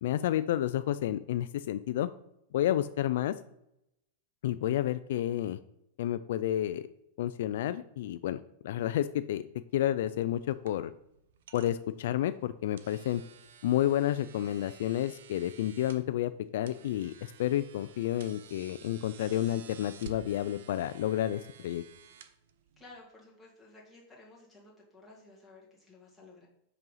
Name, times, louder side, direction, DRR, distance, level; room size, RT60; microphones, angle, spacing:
voice 1, 0.0-2.1 2.5-3.3 4.4-5.6 6.0-6.9 7.2-8.4 8.6-9.4 9.7-10.9 11.5-13.2 13.6-21.8, left 12 dB, 60° left, 12 dB, 0.3 m, -30 dB
sound 1, 9.7-23.0, right 7 dB, 70° right, 0.7 m, -54 dB
voice 2, 22.8-26.5, left 2 dB, ahead, -5 dB, 1.9 m, -54 dB
5.5 x 5.3 x 5.6 m, 0.80 s
supercardioid pair, 170°, 0 cm